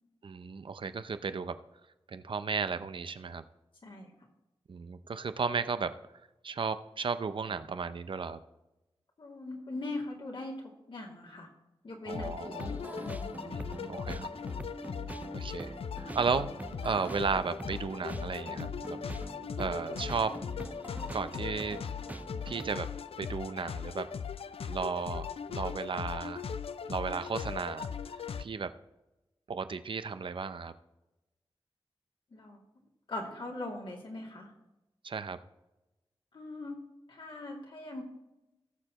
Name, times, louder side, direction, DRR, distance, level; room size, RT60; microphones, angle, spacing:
voice 1, 0.2-1.6 2.1-3.4 4.7-5.9 6.4-8.4 12.1-12.7 13.5-14.3 15.3-16.5 16.8-19.0 19.6-20.4 21.1-21.8 22.5-22.9 23.2-24.1 24.7-26.4 26.9-27.9 28.4-28.7 29.5-30.7 35.0-35.4, right 5 dB, 60° right, 11 dB, 0.6 m, -34 dB
voice 2, 9.2-11.5 11.8-13.6 32.3-32.6 33.1-34.5 36.3-36.8 37.1-38.0, left 2 dB, 60° left, -2 dB, 2.5 m, -41 dB
sound 1, 12.1-28.4, left 7 dB, 80° left, 0.4 m, -39 dB
sound 2, 12.4-22.8, right 2 dB, 15° right, 0.3 m, -44 dB
18.5 x 6.7 x 3.0 m, 0.99 s
wide cardioid pair, 120°, 10 cm